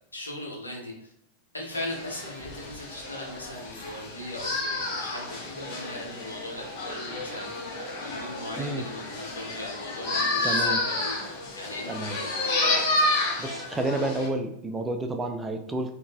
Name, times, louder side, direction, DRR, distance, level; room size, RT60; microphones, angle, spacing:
voice 1, 0.1-1.1 1.5-7.7 8.0-11.2 11.6-12.5, left 1 dB, 80° left, -2 dB, 0.9 m, -39 dB
sound 1, 1.7-14.3, left 2 dB, 45° left, 0.8 m, -30 dB
voice 2, 8.6-8.9 10.4-10.8 11.9-12.2 13.4-16.0, right 2 dB, 15° right, 5 dB, 0.3 m, -30 dB
3.8 x 2.4 x 2.3 m, 0.78 s
figure-of-eight pair, 90°, 0 cm